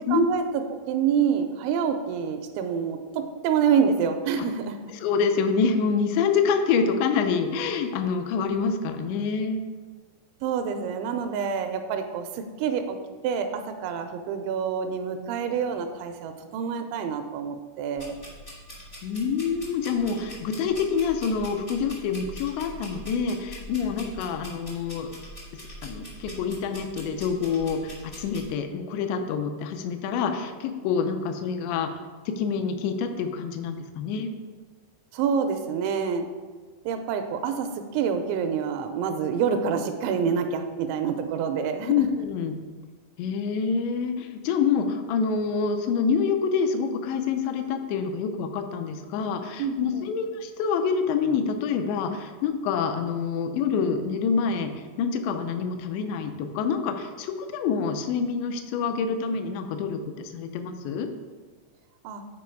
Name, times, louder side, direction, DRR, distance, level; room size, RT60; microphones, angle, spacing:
voice 1, 0.1-4.8 10.4-13.0 13.2-18.1 35.1-36.3 36.9-37.7 37.9-41.9 49.6-50.1 62.0-62.2, right 7 dB, 85° right, 6 dB, 2.9 m, -27 dB
voice 2, 4.9-9.6 19.0-25.1 25.8-31.9 32.3-34.3 41.9-42.6 43.2-61.1, left 6 dB, 80° left, 6 dB, 2.7 m, -27 dB
sound 1, 18.0-28.4, equal, 60° left, 0.5 m, -43 dB
8.4 x 4.7 x 4.5 m, 1.4 s
omnidirectional pair, 5.4 m